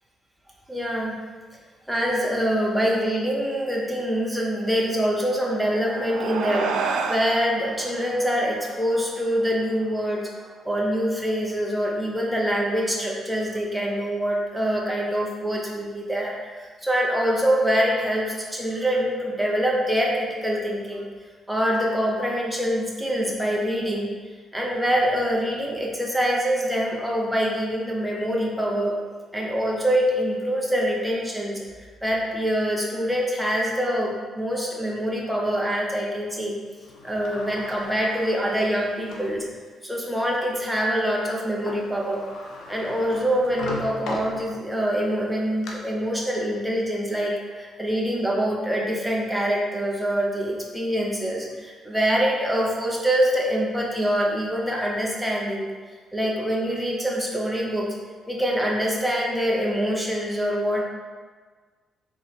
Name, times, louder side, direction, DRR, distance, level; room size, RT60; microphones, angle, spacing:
voice 1, 0.7-1.2 1.9-10.2 10.6-21.1 21.5-24.1 24.5-29.0 29.3-36.6 37.0-39.5 39.8-42.2 42.7-55.7 56.1-57.9 58.3-60.8, equal, 5° right, -3 dB, 0.8 m, -25 dB
sound 1, 5.4-10.2, right 5 dB, 80° right, 0.3 m, -32 dB
Sliding door, 36.8-39.4 40.0-40.1 41.4-41.5 41.6-44.8 45.3-45.7, left 2 dB, 75° left, 0.6 m, -38 dB
3.8 x 3.1 x 3.1 m, 1.4 s
cardioid pair, 90°, 0 cm